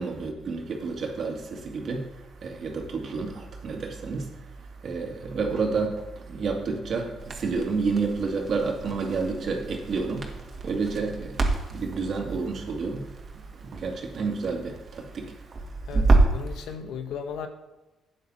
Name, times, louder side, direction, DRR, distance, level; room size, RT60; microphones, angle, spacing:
voice 1, 0.0-15.9, right 4 dB, 55° right, 2.2 m, -30 dB
Crackle, 7.2-16.5, right 3 dB, 40° right, 2.0 m, -28 dB
voice 2, 15.8-17.5, left 7 dB, 80° left, 1.2 m, -36 dB
12.0 x 9.1 x 4.2 m
cardioid pair, 90°, 0 cm